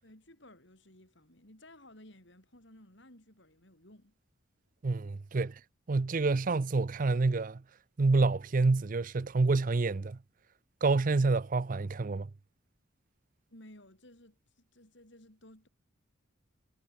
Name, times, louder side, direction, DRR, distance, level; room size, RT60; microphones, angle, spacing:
voice 1, 0.0-4.2 13.5-15.7, left 1 dB, 55° left, 5.8 m, -56 dB
voice 2, 4.8-5.5 5.9-7.6 8.0-10.2 10.8-12.3, right 3 dB, 40° right, 0.5 m, -28 dB
head